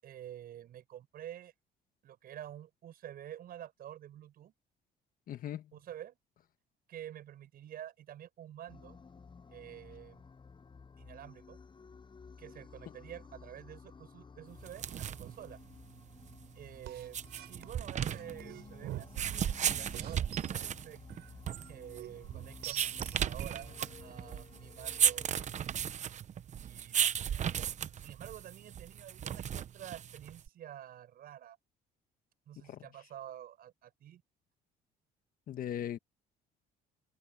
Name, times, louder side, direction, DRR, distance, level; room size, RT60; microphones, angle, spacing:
voice 1, 0.0-1.5 2.0-4.5 5.7-6.2 6.9-9.0 9.5-10.3 11.0-11.6 12.4-15.6 16.5-21.0 21.6-25.7 26.6-31.6 32.5-34.2, right 11 dB, 60° right, 7.6 m, -49 dB
voice 2, 5.3-5.7 32.7-32.8 35.5-36.0, left 10 dB, 55° left, 1.4 m, -38 dB
sound 1, 8.7-25.7, left 5 dB, 30° left, 7.5 m, -54 dB
sound 2, 14.6-30.5, right 9 dB, 45° right, 0.9 m, -35 dB
sound 3, 16.8-19.6 19.9-20.5 21.1-23.8, right 15 dB, 80° right, 7.5 m, -45 dB
cardioid pair, 110°, 17 cm